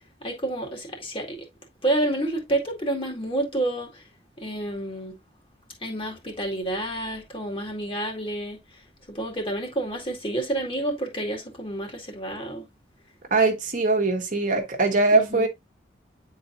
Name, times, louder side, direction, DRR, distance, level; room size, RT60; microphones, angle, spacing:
voice 1, 0.2-1.4 1.8-4.0 4.4-5.2 5.8-8.6 9.1-12.6 15.1-15.5, right 1 dB, 30° left, 2.2 m, -29 dB
voice 2, 13.3-15.5, right 3 dB, 45° right, 1.2 m, -21 dB
9.6 x 4.0 x 2.6 m
head